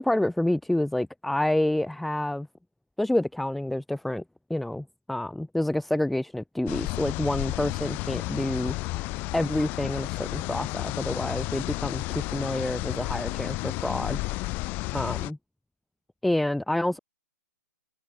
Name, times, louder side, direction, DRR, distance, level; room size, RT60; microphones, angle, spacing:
voice 1, 0.0-2.5 3.0-4.2 4.5-8.7 9.3-14.2 14.9-15.4 16.2-17.0, left 1 dB, ahead, 2.2 m, -28 dB
sound 1, 6.7-15.3, left 23 dB, 20° left, 7.7 m, -32 dB
hypercardioid pair, 175°, 10 cm